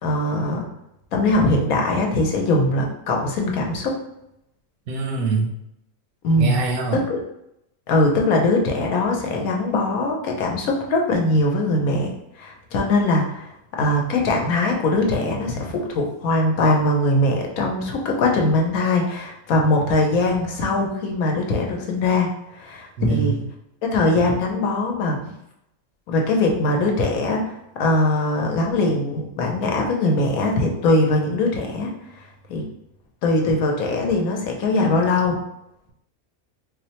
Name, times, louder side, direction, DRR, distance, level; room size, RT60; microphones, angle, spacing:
voice 1, 0.0-0.7 1.1-3.9 6.2-6.5 6.9-7.2 7.9-12.1 12.4-13.5 13.8-23.4 23.8-25.2 26.1-27.4 27.8-31.9 32.5-32.6 33.2-35.4, left 2 dB, 85° left, 1 dB, 1.1 m, -21 dB
voice 2, 4.9-5.5 6.4-7.0 23.0-23.4, right 4 dB, 80° right, 2 dB, 1.1 m, -23 dB
4.2 x 2.1 x 2.8 m, 0.82 s
omnidirectional pair, 1.5 m